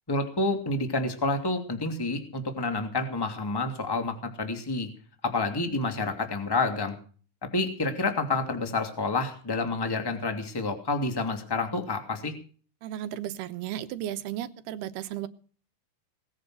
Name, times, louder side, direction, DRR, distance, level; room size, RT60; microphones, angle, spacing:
voice 1, 0.1-4.9 5.2-6.9 7.5-12.3, left 3 dB, 5° left, 5 dB, 1.9 m, -29 dB
voice 2, 12.8-15.3, right 12 dB, 85° right, 12 dB, 3.0 m, -34 dB
19.5 x 10.0 x 6.3 m, 0.42 s
omnidirectional pair, 4.5 m